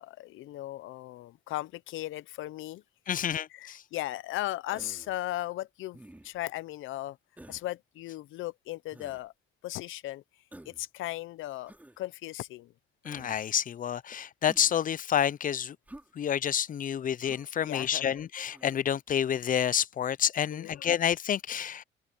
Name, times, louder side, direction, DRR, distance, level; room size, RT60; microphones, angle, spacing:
voice 1, 0.0-2.8 3.5-7.2 7.5-9.3 9.6-10.2 10.7-12.7 17.6-18.5 20.5-20.9, left 15 dB, 85° left, 0.7 m, -37 dB
voice 2, 3.1-3.8 13.0-15.8 16.2-21.8, left 9 dB, 45° left, 0.5 m, -29 dB
Human voice, 4.7-5.2 5.9-6.4 7.4-7.7 8.9-9.2 10.5-10.8 11.7-12.0 13.0-13.4 14.5-14.8 15.9-16.1 17.2-17.5 18.5-18.8, right 1 dB, 10° right, 3.1 m, -50 dB
open air
cardioid pair, 90°, 20 cm